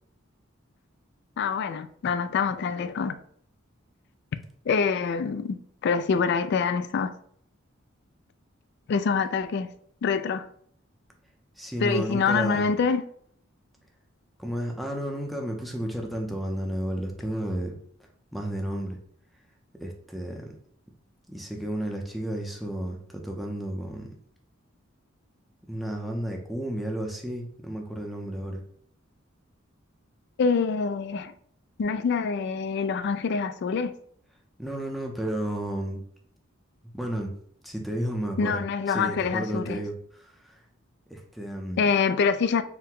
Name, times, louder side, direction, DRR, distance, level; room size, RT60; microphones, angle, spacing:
voice 1, 1.4-3.2 4.7-7.1 8.9-9.7 10.0-10.5 11.8-13.0 30.4-31.3 31.8-33.9 38.4-39.8 41.8-42.6, left 5 dB, 60° left, 0.3 m, -25 dB
voice 2, 11.6-12.7 14.4-17.8 18.3-19.0 19.8-20.5 21.3-24.1 25.7-28.6 34.6-36.0 36.9-37.3 37.6-38.6 38.9-40.6 41.1-41.9, right 1 dB, ahead, 0.6 m, -32 dB
4.5 x 2.1 x 3.7 m
head